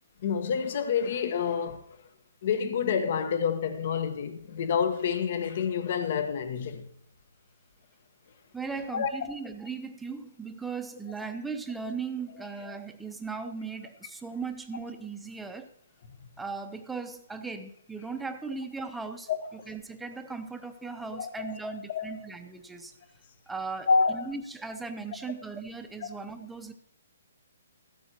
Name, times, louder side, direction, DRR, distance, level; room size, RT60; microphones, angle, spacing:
voice 1, 0.2-1.8 2.4-6.9 8.9-9.1 19.3-19.4 21.1-21.6 21.9-22.2 23.9-24.2, left 6 dB, 45° left, 1.1 m, -28 dB
voice 2, 8.5-15.7 16.4-22.9 23.5-26.7, right 4 dB, 5° right, 0.8 m, -38 dB
14.5 x 12.5 x 3.0 m
hypercardioid pair, 160°, 0 cm